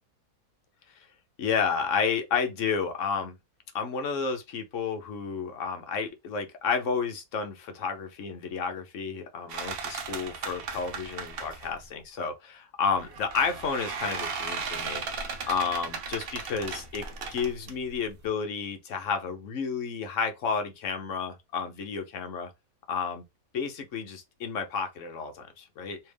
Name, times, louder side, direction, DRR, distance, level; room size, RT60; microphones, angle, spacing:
voice 1, 1.4-3.3 3.7-15.0 15.5-17.0 17.3-22.5 22.9-23.2 23.5-26.0, left 5 dB, 65° left, 0.9 m, -31 dB
sound 1, 9.5-11.8 12.9-18.3, right 5 dB, 65° right, 0.6 m, -36 dB
3.4 x 2.7 x 3.2 m
omnidirectional pair, 1.6 m